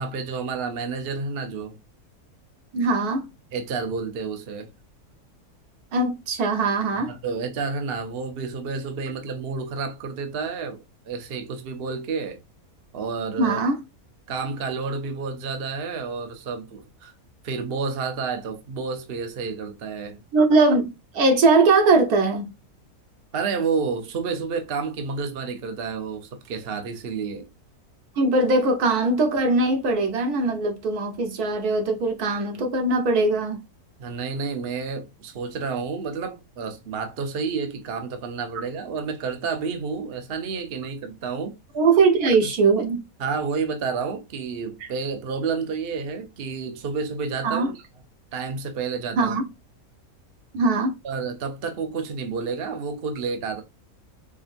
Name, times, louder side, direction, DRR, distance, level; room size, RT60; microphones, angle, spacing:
voice 1, 0.0-1.8 3.5-4.7 7.0-12.4 12.9-13.6 14.3-17.1 17.4-20.2 23.3-27.5 34.0-41.6 43.2-47.8 48.3-49.4 51.0-53.6, right 5 dB, 50° right, 0.8 m, -30 dB
voice 2, 2.7-3.2 5.9-7.1 13.4-13.8 20.3-22.5 28.2-33.6 41.7-43.0 47.4-47.7 49.2-49.4 50.5-50.9, right 3 dB, 85° right, 1.5 m, -21 dB
5.0 x 2.7 x 2.5 m
omnidirectional pair, 1.6 m